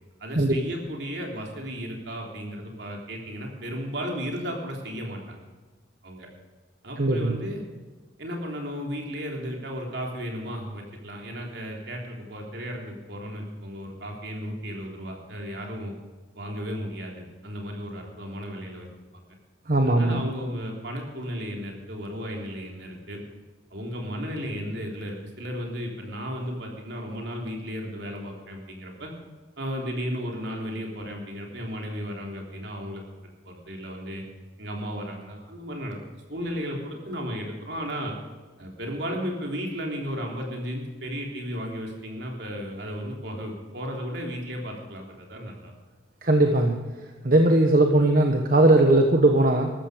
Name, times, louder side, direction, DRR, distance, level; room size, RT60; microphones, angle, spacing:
voice 1, 0.2-5.4 6.0-6.3 6.8-7.6 8.2-15.9 16.4-18.9 19.1-19.4 19.9-23.2 23.7-29.1 29.6-33.0 33.4-34.2 34.6-36.0 36.3-38.1 38.6-45.7, equal, 65° right, 0 dB, 3.5 m, -34 dB
voice 2, 7.0-7.4 19.7-20.3 46.2-46.8 47.2-49.7, right 1 dB, 50° right, 3 dB, 1.2 m, -19 dB
14.0 x 13.0 x 5.1 m, 1.4 s
head